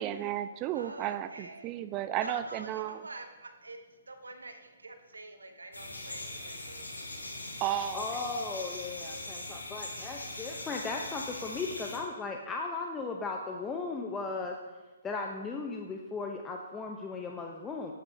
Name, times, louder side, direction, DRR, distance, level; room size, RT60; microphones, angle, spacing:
voice 1, 0.0-3.1 7.6-8.0, right 12 dB, 25° right, 12 dB, 0.4 m, -33 dB
voice 2, 0.7-1.7 2.2-3.8 4.1-6.9, right 2 dB, 80° right, 6 dB, 1.0 m, -46 dB
sound 1, 5.7-12.0, left 2 dB, 85° left, 2.3 m, -41 dB
voice 3, 7.9-14.6 15.0-17.9, left 4 dB, 15° left, 1 dB, 0.6 m, -36 dB
12.5 x 8.7 x 2.7 m, 1.2 s
figure-of-eight pair, 130°, 0 cm